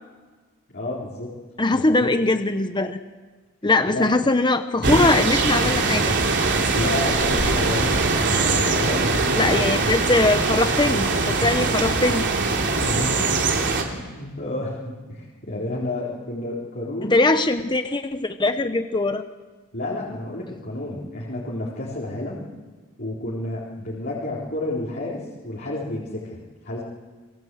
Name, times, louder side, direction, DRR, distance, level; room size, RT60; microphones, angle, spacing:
voice 1, 0.7-1.3 1.7-2.1 3.9-4.1 6.7-9.6 12.8-13.3 13.9-17.2 19.7-22.4 23.0-26.4 26.6-26.8, left 1 dB, 45° left, -5 dB, 4.3 m, -31 dB
voice 2, 1.6-3.0 3.6-6.1 9.4-12.3 17.0-19.2, left 2 dB, 20° left, 9 dB, 0.8 m, -21 dB
sound 1, 4.8-13.8, right 3 dB, 55° right, 3.2 m, -22 dB
28.5 x 23.0 x 7.9 m, 1.4 s
head